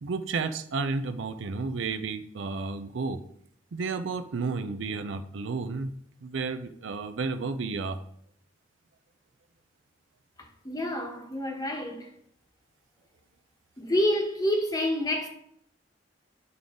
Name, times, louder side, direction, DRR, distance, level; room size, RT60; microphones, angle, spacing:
voice 1, 0.0-3.2 3.7-6.0 6.2-8.0, right 4 dB, 80° right, 0.5 m, -32 dB
voice 2, 10.4-12.1 13.8-15.3, left 1 dB, 20° left, 1.1 m, -28 dB
9.4 x 3.8 x 3.6 m
head